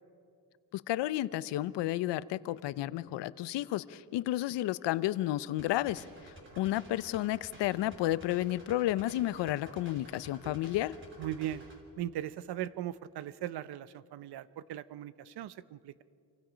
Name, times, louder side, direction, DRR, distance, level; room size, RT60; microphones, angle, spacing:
voice 1, 0.7-11.0, left 14 dB, 85° left, 17 dB, 0.7 m, -32 dB
sound 1, 5.6-11.8, right 1 dB, 30° right, 3.5 m, -52 dB
voice 2, 11.2-11.6 12.0-16.0, right 12 dB, 70° right, 16 dB, 0.8 m, -39 dB
28.0 x 23.5 x 5.1 m, 2.5 s
cardioid pair, 125°, 41 cm